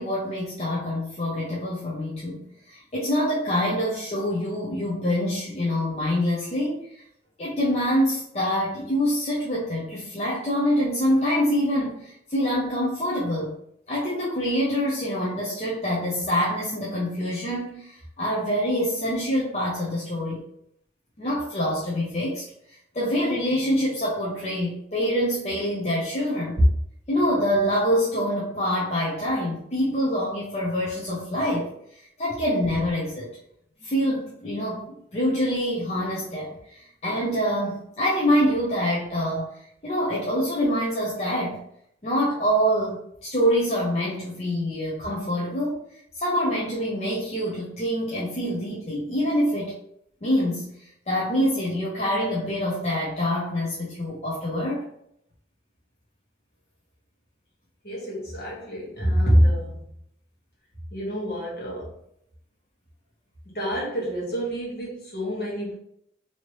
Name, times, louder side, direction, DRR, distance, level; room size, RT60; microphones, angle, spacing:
voice 1, 0.0-7.0 7.4-13.5 13.9-20.4 21.2-26.6 27.1-33.3 33.8-41.6 42.0-45.8 46.1-49.7 50.2-54.8, equal, 35° left, -6 dB, 0.6 m, -26 dB
voice 2, 57.8-59.8 60.9-61.9 63.4-65.7, equal, 55° left, -5 dB, 1.4 m, -26 dB
3.1 x 2.8 x 3.0 m, 0.73 s
head